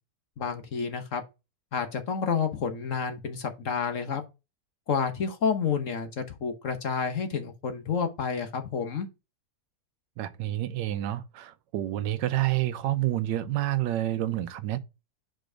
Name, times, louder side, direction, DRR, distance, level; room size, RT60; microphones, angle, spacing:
voice 1, 0.4-1.2 1.7-4.2 4.9-9.1, left 6 dB, 55° left, 1.1 m, -29 dB
voice 2, 10.2-14.8, right 14 dB, 90° right, 1.3 m, -28 dB
5.1 x 4.5 x 5.0 m
omnidirectional pair, 1.9 m